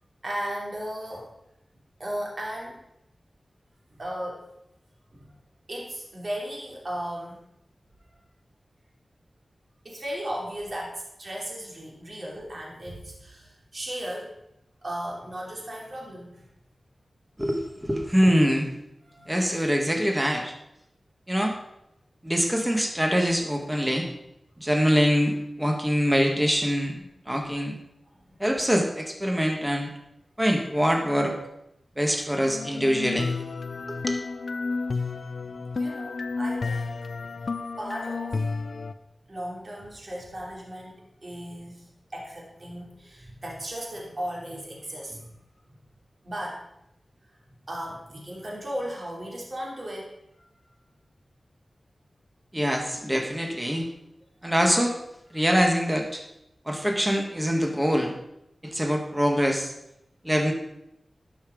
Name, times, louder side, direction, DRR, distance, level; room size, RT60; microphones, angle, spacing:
voice 1, 0.2-1.3 2.0-2.8 3.9-4.5 5.1-5.3 5.7-7.4 9.8-14.3 14.8-16.4 19.0-19.4 26.9-27.1 35.2-35.3 35.7-37.0 37.4-38.4 39.3-45.3 46.2-46.6 47.6-50.4, equal, 50° right, -3 dB, 3.0 m, -36 dB
voice 2, 17.4-18.7 19.3-20.5 21.3-21.6 22.2-24.1 24.6-26.9 27.3-27.8 28.4-29.9 30.4-31.3 32.0-33.3 33.9-34.2 52.5-53.9 54.4-54.9 55.3-56.2 56.7-58.1 58.6-59.7 60.2-60.5, equal, 10° right, 3 dB, 1.5 m, -24 dB
sound 1, 32.5-38.9, left 4 dB, 75° left, 0.5 m, -31 dB
11.5 x 5.8 x 5.1 m, 0.82 s
wide cardioid pair, 60°, 0 cm